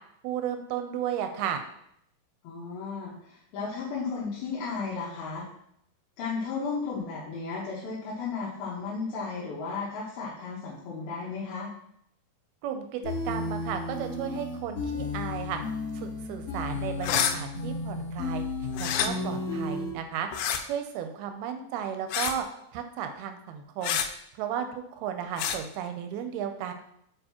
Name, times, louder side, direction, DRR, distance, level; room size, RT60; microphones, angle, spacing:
voice 1, 0.2-1.6 12.6-15.6 15.9-18.5 18.8-20.3 20.6-22.5 22.7-24.0 24.4-26.7, right 9 dB, 80° right, 7 dB, 2.4 m, -34 dB
voice 2, 2.4-5.5 6.2-11.7, left 4 dB, 75° left, -6 dB, 2.8 m, -34 dB
sound 1, 13.0-19.9, left 2 dB, 45° left, 2.9 m, -33 dB
sound 2, 17.0-17.3 18.7-19.1 20.3-20.6 22.1-22.4 23.8-24.1 25.4-25.6, left 9 dB, 90° left, 2.7 m, -27 dB
7.7 x 4.5 x 2.9 m, 0.73 s
omnidirectional pair, 4.6 m